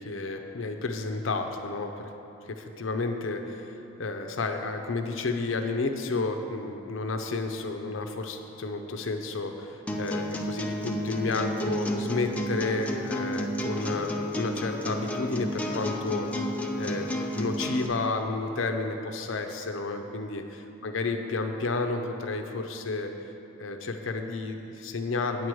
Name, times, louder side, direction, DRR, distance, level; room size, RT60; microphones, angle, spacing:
voice 1, 0.0-2.1 2.5-3.7 4.0-16.5 16.8-17.1 17.4-23.1 23.6-25.5, left 3 dB, 80° left, 5 dB, 0.7 m, -31 dB
sound 1, 9.9-17.9, equal, 5° left, 0.5 m, -31 dB
9.2 x 4.7 x 7.7 m, 2.9 s
head